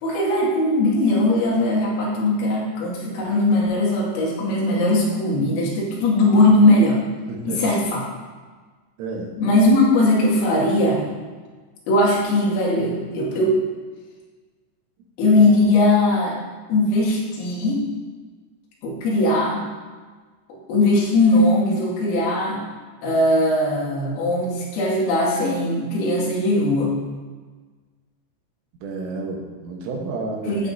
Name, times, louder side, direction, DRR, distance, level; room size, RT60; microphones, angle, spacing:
voice 1, 0.0-7.0 7.5-8.1 9.4-11.1 11.9-13.6 15.2-16.4 16.7-17.8 18.8-19.7 20.7-22.6 23.0-26.9 30.5-30.7, left 2 dB, 90° left, -4 dB, 4.9 m, -19 dB
voice 2, 7.3-7.7 9.0-9.3 28.8-30.6, right 3 dB, 75° right, 1 dB, 3.7 m, -30 dB
15.0 x 8.4 x 2.7 m, 1.4 s
omnidirectional pair, 5.9 m